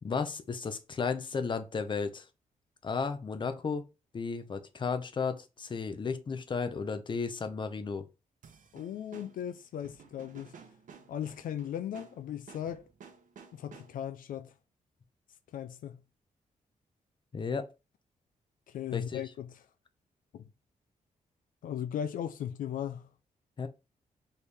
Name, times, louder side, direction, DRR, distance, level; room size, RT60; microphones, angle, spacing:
voice 1, 0.0-2.2 2.8-3.8 4.1-8.0 17.3-17.7 18.9-19.2 23.6-23.7, left 5 dB, 35° left, 0.6 m, -34 dB
sound 1, 8.4-14.2, right 6 dB, 70° right, 0.9 m, -54 dB
voice 2, 8.7-10.5 11.1-12.9 13.5-14.5 15.5-16.0 18.7-19.6 20.3-20.5 21.6-23.1, left 9 dB, 80° left, 0.4 m, -37 dB
4.5 x 3.2 x 3.4 m
cardioid pair, 110°, 14 cm